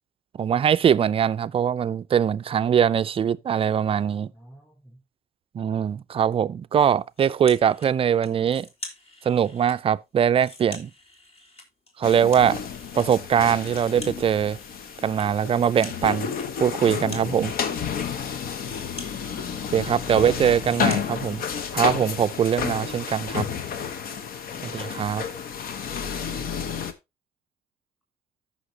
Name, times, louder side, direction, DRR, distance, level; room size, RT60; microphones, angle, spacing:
voice 1, 0.4-4.3 5.5-8.7 9.3-10.9 12.0-12.6 13.0-14.6 15.0-16.3 16.6-17.5 19.7-21.4 21.7-23.5 24.6-25.2, right 8 dB, 35° right, 0.4 m, -22 dB
voice 2, 4.3-5.0 19.2-20.1 22.8-22.9 23.9-24.9, right 1 dB, 10° left, 3.8 m, -50 dB
sound 1, 7.2-7.9 8.2-9.8 10.2-13.1 13.3-21.7, left 2 dB, 35° left, 2.7 m, -45 dB
sound 2, 12.0-26.9, left 7 dB, 60° left, 1.1 m, -31 dB
14.5 x 5.8 x 2.8 m
cardioid pair, 110°, 17 cm